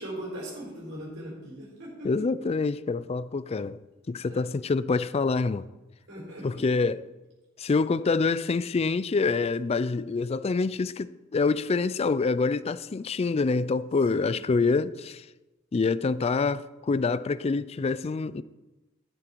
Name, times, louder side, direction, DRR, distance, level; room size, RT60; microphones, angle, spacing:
voice 1, 0.0-2.1 4.3-4.4 6.1-6.6 14.1-14.3, right 1 dB, 70° right, 4.7 m, -39 dB
voice 2, 2.0-3.8 4.1-5.7 6.4-7.0 7.6-15.2 15.7-18.4, left 4 dB, 30° left, 0.3 m, -26 dB
12.0 x 8.9 x 4.5 m
head